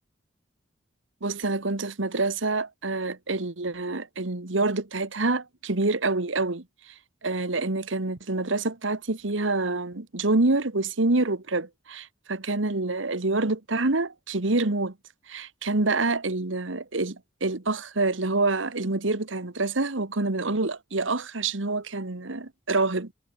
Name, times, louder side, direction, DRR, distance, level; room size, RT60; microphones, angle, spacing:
voice 1, 1.2-6.6 7.2-14.9 15.3-23.1, right 2 dB, 80° right, 1.6 m, -27 dB
head